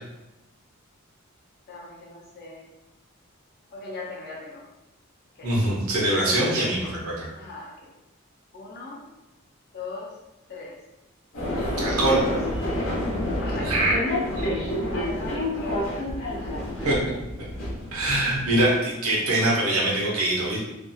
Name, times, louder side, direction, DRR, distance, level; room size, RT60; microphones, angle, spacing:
voice 1, 1.7-2.6 3.7-4.7 5.4-5.6 6.1-6.6 7.4-7.9 8.5-9.1 9.7-10.2 10.5-10.8 12.0-12.4 13.4-16.1 16.3-17.1, left 3 dB, 45° left, -3 dB, 0.6 m, -40 dB
voice 2, 5.4-7.3 11.8-12.2 13.6-14.0 14.4-14.5 16.8-17.0 17.9-20.6, right 1 dB, 85° right, -4 dB, 0.8 m, -23 dB
sound 1, 11.3-18.7, left 1 dB, 70° left, 0.9 m, -28 dB
2.5 x 2.3 x 2.6 m, 0.97 s
head